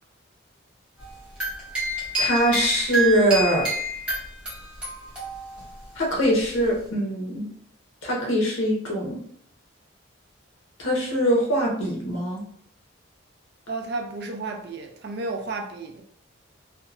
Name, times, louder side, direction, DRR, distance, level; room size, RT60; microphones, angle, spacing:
sound 1, 1.0-5.9, right 1 dB, 5° right, 0.8 m, -29 dB
voice 1, 2.2-3.7 6.0-7.5 8.0-9.2 10.8-12.4, equal, 80° left, 0.9 m, -22 dB
voice 2, 13.7-16.0, right 3 dB, 50° right, 0.4 m, -32 dB
2.7 x 2.1 x 2.5 m
head